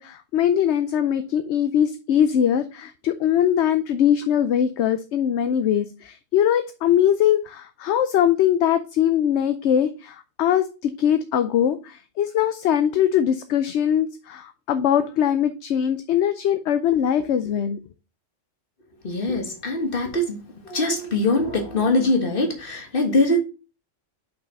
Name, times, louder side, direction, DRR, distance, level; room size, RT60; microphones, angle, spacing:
voice 1, 0.0-17.8, left 9 dB, 65° left, 10 dB, 0.9 m, -21 dB
voice 2, 19.0-23.4, left 2 dB, 45° left, 3 dB, 1.7 m, -23 dB
5.6 x 5.6 x 4.0 m, 0.32 s
omnidirectional pair, 1.3 m